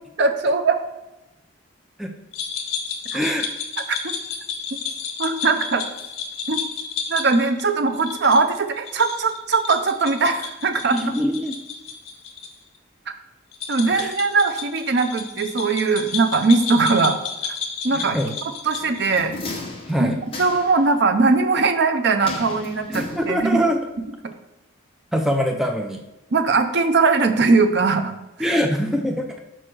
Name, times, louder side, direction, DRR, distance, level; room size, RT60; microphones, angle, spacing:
voice 1, 0.2-0.8 3.1-3.2 3.9-4.1 5.2-5.8 6.5-6.6 7.1-11.1 13.7-17.2 17.8-18.2 18.6-19.3 20.0-20.1 20.4-23.6 26.3-28.1 28.5-28.6, right 4 dB, 50° right, 7 dB, 0.6 m, -20 dB
sound 1, 2.3-12.5 12.7-12.8 13.5-19.3, left 6 dB, 75° left, 1.0 m, -32 dB
voice 2, 3.1-3.5 10.9-11.6 13.9-14.1 17.9-18.3 19.9-20.2 22.9-23.8 25.1-26.0 28.4-29.4, equal, ahead, 3 dB, 0.4 m, -23 dB
sound 2, 18.8-20.9 22.2-23.7 24.0-24.1, left 2 dB, 25° left, 1.1 m, -35 dB
5.3 x 4.6 x 6.1 m, 0.95 s
head